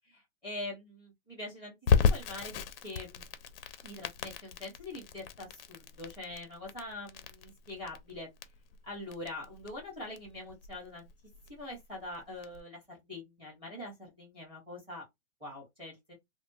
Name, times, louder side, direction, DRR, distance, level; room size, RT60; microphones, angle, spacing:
voice 1, 0.4-1.7 2.0-3.2 3.8-8.3 8.8-11.1 11.5-15.1 15.4-16.1, left 2 dB, 15° right, 1.4 m, -43 dB
Crackle, 1.9-12.6, left 6 dB, 50° left, 0.5 m, -34 dB
3.1 x 2.1 x 2.7 m
hypercardioid pair, 160°, 39 cm